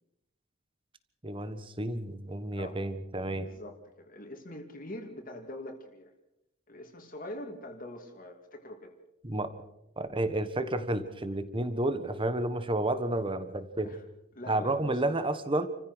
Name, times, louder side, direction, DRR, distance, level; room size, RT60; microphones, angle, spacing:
voice 1, 1.2-3.5 9.2-9.5 10.0-14.0 14.5-15.7, right 1 dB, 25° right, 11 dB, 1.4 m, -31 dB
voice 2, 3.4-6.1 6.7-9.0 13.8-14.0 14.3-15.0, left 1 dB, 45° left, 3 dB, 2.6 m, -44 dB
28.5 x 15.5 x 6.3 m, 0.85 s
head